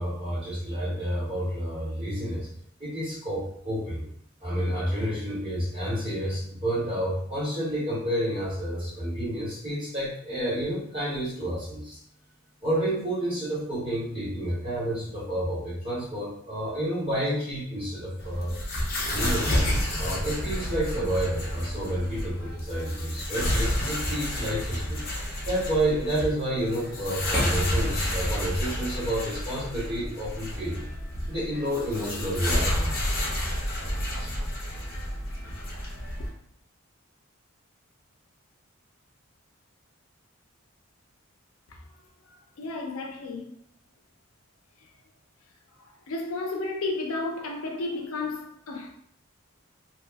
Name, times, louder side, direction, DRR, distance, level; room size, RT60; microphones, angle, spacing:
voice 1, 0.0-2.5 2.8-4.0 4.4-12.0 12.6-18.6 19.1-19.7 20.0-25.0 25.5-30.8 31.3-32.9 34.2-34.3, right 1 dB, 25° right, 1.2 m, -29 dB
sound 1, 18.2-36.3, left 1 dB, 45° left, 0.7 m, -30 dB
voice 2, 42.3-43.5 46.1-48.9, left 3 dB, 85° left, 0.5 m, -32 dB
2.8 x 2.0 x 3.3 m
head